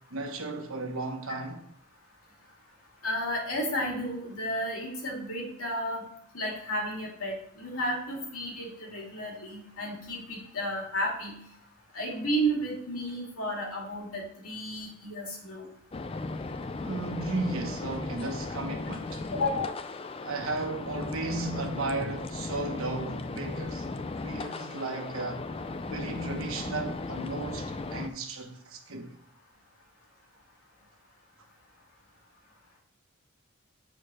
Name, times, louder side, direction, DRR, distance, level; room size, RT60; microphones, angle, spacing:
voice 1, 0.1-1.6 16.8-19.3 20.2-23.9 24.2-25.4 25.9-29.1, right 2 dB, 70° right, 1.3 m, -35 dB
voice 2, 3.0-6.0 6.3-11.3 11.9-15.7 19.3-19.8, equal, 75° left, 2.7 m, -32 dB
sound 1, 15.9-28.1, left 3 dB, 25° left, 0.4 m, -36 dB
6.7 x 4.6 x 6.4 m
head